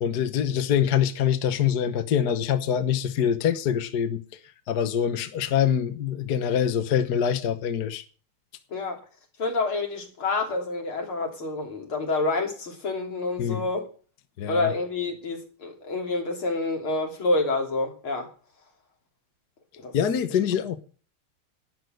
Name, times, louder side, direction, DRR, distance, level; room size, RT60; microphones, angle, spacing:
voice 1, 0.0-4.2 4.7-8.0 13.4-13.6 14.4-14.7 19.9-20.8, left 8 dB, 55° left, 1.4 m, -24 dB
voice 2, 8.7-9.0 9.4-13.8 14.5-18.3 19.8-19.9, left 3 dB, 80° left, 3.9 m, -28 dB
12.5 x 10.0 x 6.5 m
omnidirectional pair, 2.3 m